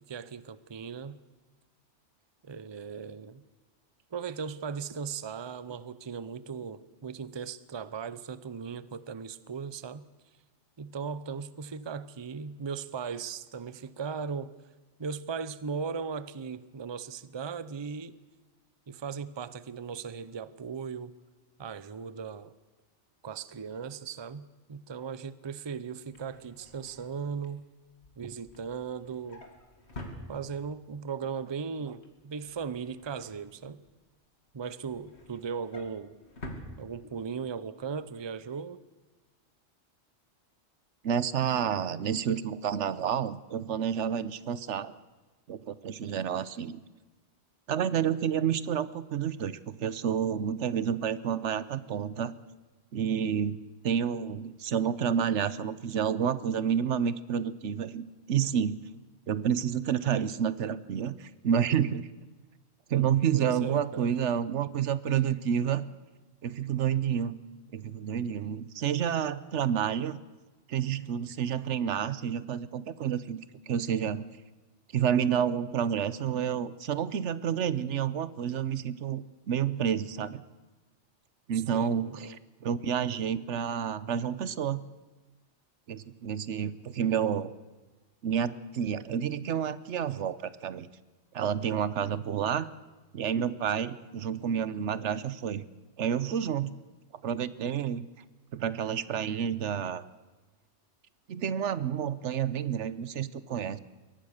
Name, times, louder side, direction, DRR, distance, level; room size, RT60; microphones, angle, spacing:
voice 1, 0.1-1.2 2.4-3.4 4.1-10.1 10.8-14.5 15.0-18.2 18.9-21.1 21.6-22.5 23.2-27.7 28.2-29.4 30.3-33.8 34.5-36.1 36.8-38.8 63.3-64.1 81.7-82.4, right 6 dB, 30° right, 16 dB, 0.6 m, -38 dB
Drawer open or close, 26.1-30.9 31.3-31.6 31.9-34.1 34.5-37.5 37.8-38.0 38.3-38.4, left 1 dB, 65° left, 2.8 m, -48 dB
voice 2, 41.0-44.9 45.5-46.8 47.7-52.3 52.9-53.6 53.8-58.8 59.3-62.1 62.9-65.8 66.4-67.4 67.7-70.2 70.7-73.4 73.7-74.2 74.9-80.4 81.5-82.3 82.6-84.8 85.9-87.5 88.2-90.9 91.3-92.7 93.1-95.6 96.0-96.7 97.2-98.0 98.5-100.1 101.3-103.8, right 8 dB, 80° right, 16 dB, 1.1 m, -29 dB
22.5 x 18.0 x 6.6 m, 1.2 s
omnidirectional pair, 1.2 m